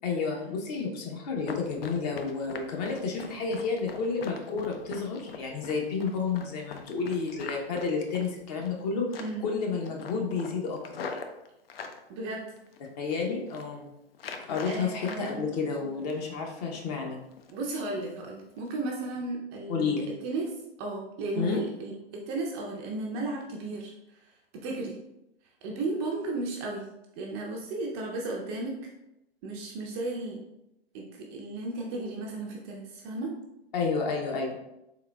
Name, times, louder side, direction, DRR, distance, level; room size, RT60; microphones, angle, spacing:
voice 1, 0.0-9.1 9.4-11.2 13.0-13.9 14.5-17.2 19.7-20.1 21.4-21.6 33.7-34.5, left 4 dB, 40° left, 1 dB, 0.8 m, -31 dB
Run, 1.4-8.8 9.1-9.5 9.8-12.0 12.6-13.1 13.4-13.7 14.1-15.3 15.6-16.4 16.7-16.9 17.3-17.7 18.0-18.1 18.6-18.7 19.1-19.2, left 5 dB, 65° left, 0.5 m, -42 dB
voice 2, 9.2-9.5 12.1-12.4 14.7-15.5 17.5-20.5 20.8-22.0 22.3-25.0 25.6-26.9 27.2-28.8 29.4-30.4 30.9-33.3, right 2 dB, 25° right, -1 dB, 0.4 m, -34 dB
3.8 x 3.5 x 2.2 m, 0.87 s
figure-of-eight pair, 115°, 31 cm